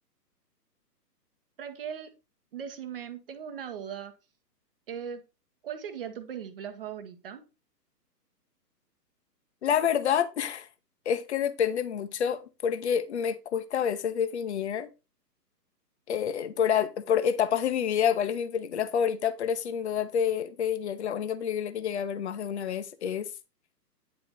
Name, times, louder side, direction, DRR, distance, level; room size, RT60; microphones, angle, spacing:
voice 1, 1.6-2.1 2.5-4.1 4.9-5.2 5.6-7.4, right 8 dB, 35° right, 0.9 m, -38 dB
voice 2, 9.6-10.7 11.1-14.9 16.1-23.3, left 8 dB, 45° left, 0.7 m, -28 dB
9.5 x 4.0 x 4.2 m
figure-of-eight pair, 130°, 49 cm